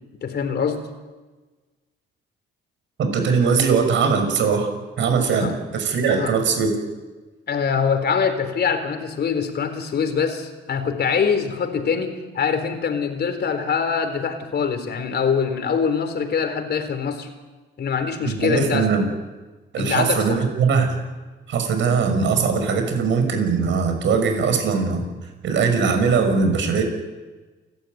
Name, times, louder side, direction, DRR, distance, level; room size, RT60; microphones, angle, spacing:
voice 1, 0.2-0.8 5.4-5.6 6.1-6.3 7.5-17.3 17.8-18.9 19.8-20.4, left 6 dB, 55° left, 8 dB, 3.8 m, -24 dB
voice 2, 3.0-4.7 5.0-6.7 18.2-19.1 19.7-21.0 21.5-25.0 25.4-26.8, right 5 dB, 70° right, 5 dB, 6.4 m, -20 dB
29.0 x 13.0 x 9.4 m, 1.3 s
cardioid pair, 90°, 20 cm